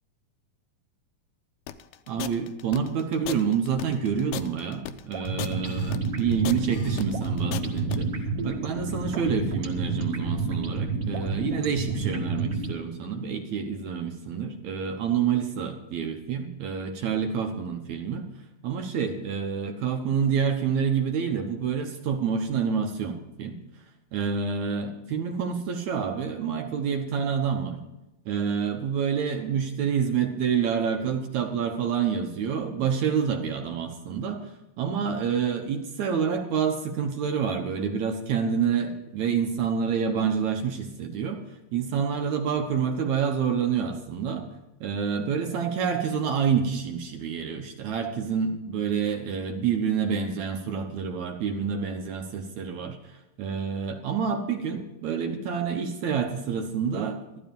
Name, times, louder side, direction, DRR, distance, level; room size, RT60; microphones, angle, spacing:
sound 1, 1.7-8.0, left 13 dB, 85° left, 2.6 m, -36 dB
voice 1, 2.1-8.1 8.4-18.3 18.6-23.6 24.1-27.8 28.3-34.5 34.8-41.4 41.7-44.5 44.8-57.4, right 7 dB, 70° right, 4 dB, 1.8 m, -28 dB
sound 2, 5.1-12.8, right 3 dB, 40° right, 1.5 m, -29 dB
14.0 x 12.5 x 5.3 m, 0.97 s
omnidirectional pair, 4.5 m